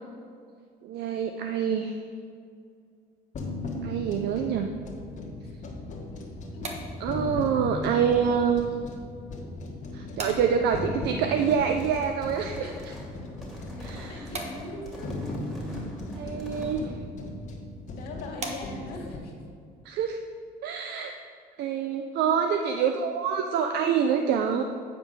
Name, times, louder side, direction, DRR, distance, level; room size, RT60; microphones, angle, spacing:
voice 1, 0.8-1.9 3.8-4.7 7.0-8.7 9.9-12.9 13.8-14.2 16.2-16.8 19.9-20.2 20.6-21.1 21.6-24.6, right 7 dB, 75° right, 5 dB, 0.6 m, -26 dB
sound 1, 3.3-19.2, left 2 dB, 45° left, 1.5 m, -37 dB
sound 2, 6.2-19.1, right 3 dB, 40° right, 1.3 m, -45 dB
sound 3, 11.4-16.7, equal, 5° right, 2.2 m, -45 dB
voice 2, 13.8-15.2 15.6-15.8 16.4-16.9 17.7-19.3, left 2 dB, 70° left, 0 dB, 2.1 m, -42 dB
9.0 x 5.1 x 5.4 m, 2.3 s
cardioid pair, 110°, 17 cm